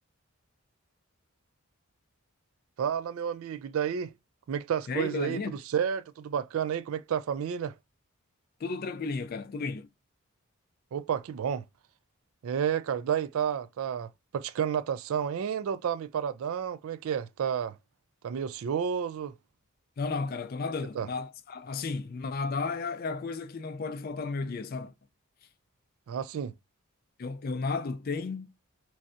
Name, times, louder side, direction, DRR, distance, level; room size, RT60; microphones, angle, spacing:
voice 1, 2.8-4.1 4.5-7.7 10.9-11.6 12.4-14.1 14.3-17.7 18.2-19.4 21.0-21.1 26.1-26.5, right 8 dB, 75° right, 0.3 m, -31 dB
voice 2, 4.9-5.6 8.6-9.9 20.0-24.9 27.2-28.5, left 4 dB, 40° left, 0.4 m, -33 dB
3.2 x 2.6 x 2.4 m
head